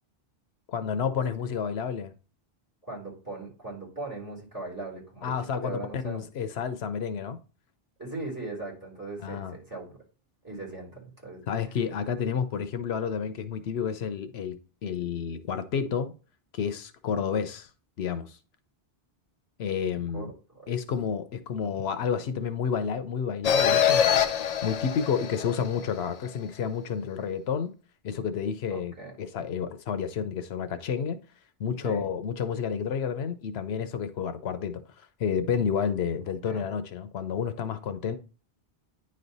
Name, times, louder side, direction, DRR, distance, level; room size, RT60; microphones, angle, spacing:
voice 1, 0.7-2.1 5.2-7.4 9.2-9.6 11.5-16.1 16.5-17.7 18.0-18.4 19.6-20.3 20.7-24.1 24.6-27.7 28.0-31.2 31.6-34.8 35.2-38.2, left 7 dB, 85° left, 0.9 m, -30 dB
voice 2, 2.8-6.2 8.0-10.0 10.4-11.4 20.1-20.3 20.5-20.7 28.7-29.1 31.8-32.1 36.3-36.7, right 2 dB, 20° right, 3.1 m, -39 dB
sound 1, 23.4-26.0, left 8 dB, 50° left, 0.5 m, -24 dB
9.5 x 3.2 x 4.0 m
omnidirectional pair, 1.0 m